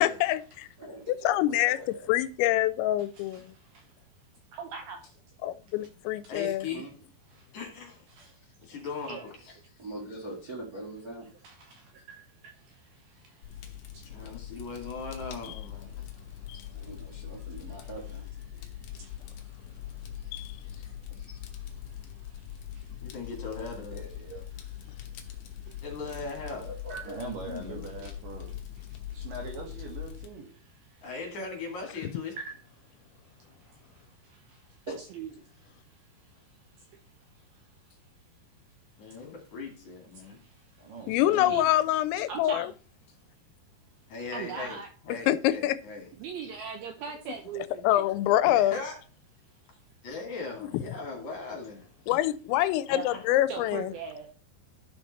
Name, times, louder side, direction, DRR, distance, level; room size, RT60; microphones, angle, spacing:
voice 1, 0.0-0.7 1.2-1.8 2.1-3.5 5.4-6.7 20.3-20.5 41.1-42.7 45.3-45.8 47.8-48.8 50.6-50.8 52.1-53.9, left 14 dB, 90° left, 2.9 m, -25 dB
voice 2, 0.8-2.1 6.7-6.9 9.4-11.3 14.2-14.3 16.7-18.2 19.0-19.1 20.1-21.4 23.9-24.4 26.5-27.2 34.9-35.0, right 2 dB, 35° right, 1.4 m, -43 dB
voice 3, 4.5-5.0 8.2-8.3 9.1-9.3 11.4-11.5 15.5-15.6 26.9-27.0 28.0-28.1 32.4-32.5 35.1-35.3 41.5-41.7 42.3-42.7 44.3-44.9 46.2-48.1 52.9-53.1 53.5-54.3, right 6 dB, 75° right, 2.3 m, -38 dB
voice 4, 6.3-6.8 7.5-8.0 8.6-9.3 14.0-15.9 23.0-24.0 25.8-26.7 27.5-27.9 31.0-32.4 39.0-40.4 44.1-44.8 45.0-46.1 48.4-48.9 50.0-51.8 52.9-53.2, left 4 dB, 50° left, 3.4 m, -39 dB
Fire, 13.4-30.3, left 11 dB, 65° left, 2.2 m, -42 dB
voice 5, 27.0-28.5 29.1-30.5 40.1-40.2 40.8-41.7, right 3 dB, 60° right, 2.7 m, -41 dB
12.5 x 5.8 x 4.2 m
omnidirectional pair, 5.1 m